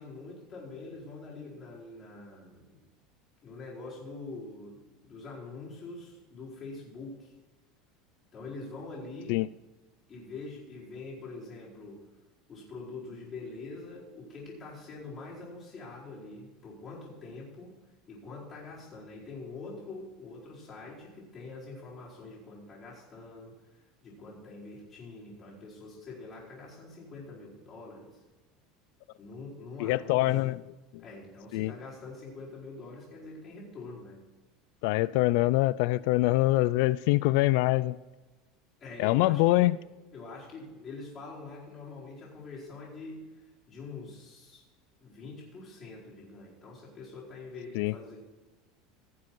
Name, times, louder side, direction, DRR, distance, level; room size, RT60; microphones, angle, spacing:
voice 1, 0.0-2.8 3.4-7.3 8.3-9.4 10.1-12.0 12.5-17.8 18.1-28.2 29.2-30.5 31.0-34.2 38.8-39.7 40.1-44.6 45.0-48.2, left 3 dB, 30° left, -7 dB, 4.6 m, -44 dB
voice 2, 29.8-30.6 31.5-31.7 34.8-38.0 39.0-39.8 47.8-47.9, left 19 dB, 65° left, 20 dB, 0.3 m, -24 dB
16.5 x 7.6 x 4.6 m, 1.2 s
supercardioid pair, 150°, 0 cm